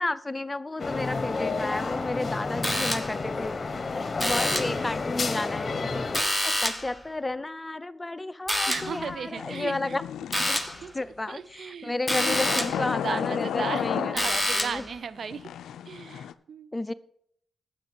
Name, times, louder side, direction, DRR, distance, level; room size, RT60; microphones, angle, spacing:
voice 1, 0.0-3.6 3.9-6.1 6.4-10.0 10.4-10.6 10.9-14.9 16.7-16.9, left 2 dB, 20° left, 16 dB, 0.5 m, -32 dB
sound 1, 0.8-6.2, left 4 dB, 45° left, 1.1 m, -30 dB
sound 2, 2.6-3.3 4.2-4.9 6.1-7.0 8.5-9.0 10.3-10.8 12.1-12.9 14.2-14.9, left 1 dB, ahead, 1.3 m, -27 dB
voice 2, 8.7-10.0 10.8-10.9 11.3-11.9 12.4-15.5 15.9-16.7, right 6 dB, 65° right, 17 dB, 0.5 m, -36 dB
sound 3, 8.8-10.8 12.1-14.7 15.2-16.3, left 9 dB, 85° left, 0.4 m, -33 dB
8.4 x 5.8 x 7.4 m, 0.69 s
cardioid pair, 60°, 0 cm